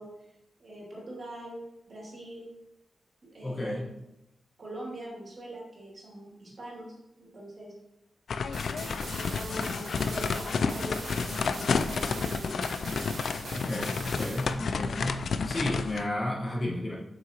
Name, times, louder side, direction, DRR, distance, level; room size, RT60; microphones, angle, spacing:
voice 1, 0.0-2.5 3.3-3.8 4.6-7.7 8.7-9.8 10.1-12.7, right 1 dB, 40° right, -4 dB, 2.6 m, -43 dB
voice 2, 3.4-3.9 13.5-17.0, left 1 dB, 30° left, -4 dB, 1.1 m, -32 dB
sound 1, 8.3-16.1, left 5 dB, 65° left, 0.3 m, -30 dB
sound 2, 8.5-14.5, right 3 dB, 70° right, 1.2 m, -42 dB
7.6 x 5.6 x 2.9 m, 0.88 s
wide cardioid pair, 140°, 0 cm